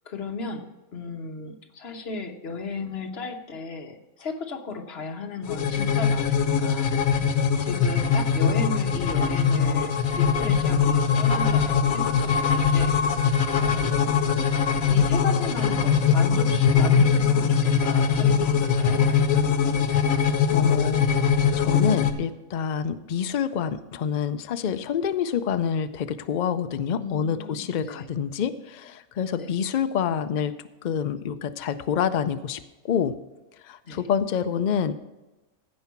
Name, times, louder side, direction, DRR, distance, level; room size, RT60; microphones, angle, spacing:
voice 1, 0.0-7.3 7.6-13.0 13.6-14.1 14.8-19.0 27.0-28.1 29.4-29.5 33.8-34.1, left 4 dB, 50° left, 4 dB, 1.3 m, -35 dB
sound 1, 5.4-22.1, left 6 dB, 70° left, 1.3 m, -22 dB
voice 2, 20.5-30.5 30.8-33.2 33.6-34.9, left 7 dB, 90° left, 11 dB, 0.4 m, -27 dB
15.5 x 5.5 x 5.8 m, 1.1 s
omnidirectional pair, 1.5 m